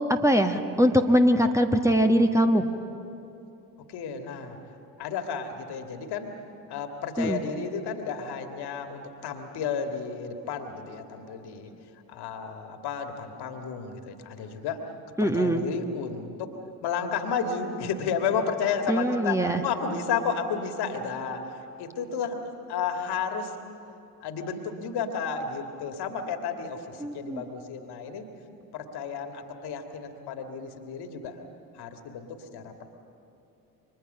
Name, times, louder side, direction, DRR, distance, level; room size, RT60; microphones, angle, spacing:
voice 1, 0.1-2.6 7.2-7.4 15.2-15.6 18.9-19.6 27.0-27.4, equal, 5° right, 5 dB, 1.5 m, -22 dB
voice 2, 3.9-4.6 5.0-6.3 6.7-11.7 12.1-14.9 15.2-16.6 16.8-23.5 24.2-28.3 28.7-31.4 31.7-32.9, left 6 dB, 55° left, 6 dB, 2.4 m, -32 dB
29.5 x 25.0 x 5.7 m, 2.8 s
figure-of-eight pair, 50°, 47 cm